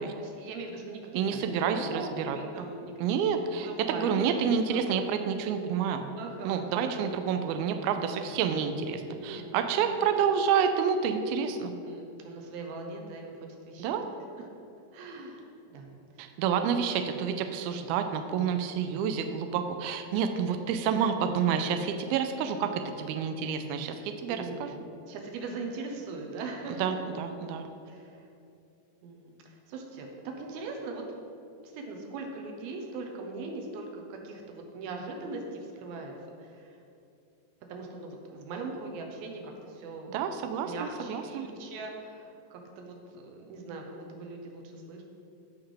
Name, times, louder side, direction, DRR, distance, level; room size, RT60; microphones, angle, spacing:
voice 1, 0.2-3.3 3.7-5.0 6.2-6.6 8.3-8.6 9.1-10.0 11.8-14.0 14.4-14.5 14.9-15.9 16.2-16.3 24.3-24.8 25.1-27.0 27.9-28.3 29.0-31.0 31.6-36.1 36.4-36.8 37.7-40.1 40.6-45.0, right 3 dB, 70° right, 2 dB, 2.6 m, -40 dB
voice 2, 1.1-2.4 3.0-6.0 6.4-11.7 13.8-14.1 16.2-24.7 26.7-27.7 40.1-41.5, right 7 dB, 90° right, 7 dB, 2.1 m, -29 dB
16.5 x 5.8 x 3.4 m, 2.7 s
omnidirectional pair, 4.9 m